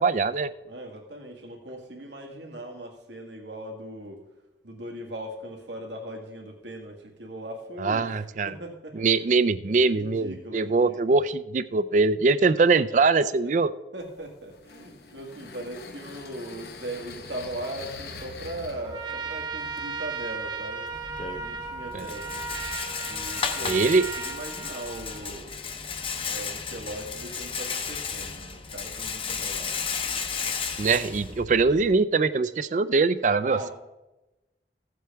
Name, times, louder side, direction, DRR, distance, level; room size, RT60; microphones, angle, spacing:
voice 1, 0.0-0.5 7.8-8.5 8.9-13.7 21.9-22.1 23.7-24.1 30.8-33.7, right 4 dB, 45° right, 14 dB, 0.4 m, -22 dB
voice 2, 0.6-4.2 4.6-9.3 9.8-11.2 13.4-13.5 13.9-20.9 21.4-22.6 23.1-23.9 24.2-25.6 26.3-29.8 33.4-33.7, right 1 dB, 85° right, 2 dB, 1.9 m, -39 dB
sound 1, 14.0-24.4, left 3 dB, 65° left, 0.9 m, -46 dB
Trumpet, 18.8-25.4, right 5 dB, 25° right, 0.8 m, -36 dB
Rattle, 20.9-32.0, left 6 dB, 30° left, 0.7 m, -34 dB
15.0 x 7.7 x 3.5 m, 1.0 s
head